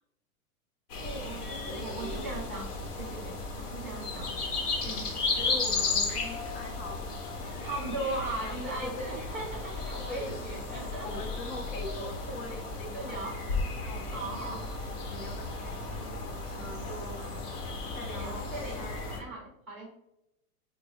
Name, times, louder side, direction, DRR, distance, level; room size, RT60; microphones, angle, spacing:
sound 1, 0.9-19.2, left 3 dB, 85° left, 1.1 m, -35 dB
voice 1, 1.0-2.7 3.0-4.5 4.8-5.1 5.9-6.0 7.6-11.3 11.7-12.4 12.9-13.4 14.1-14.7 17.2-17.3 18.1-18.8 19.1-19.9, right 2 dB, ahead, -1 dB, 0.4 m, -39 dB
voice 2, 1.6-2.3 3.9-4.2 4.8-5.0 5.3-7.0 7.4-7.6 8.4-9.3 10.1-10.6 11.0-13.4 13.8-16.2 16.5-17.2 17.6-19.1, equal, 60° left, 0 dB, 0.9 m, -43 dB
3.9 x 2.1 x 3.3 m, 0.80 s
hypercardioid pair, 160°, 45 cm